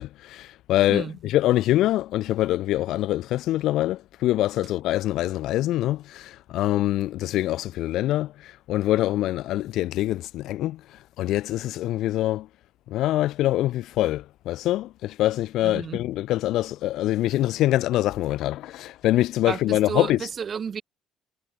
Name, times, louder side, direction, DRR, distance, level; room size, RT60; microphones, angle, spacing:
voice 1, 0.0-10.8 11.2-12.5 12.9-20.2, left 15 dB, 75° left, 2.0 m, -24 dB
voice 2, 15.6-16.0 19.5-20.8, right 7 dB, 45° right, 3.2 m, -31 dB
supercardioid pair, 75°, 0 cm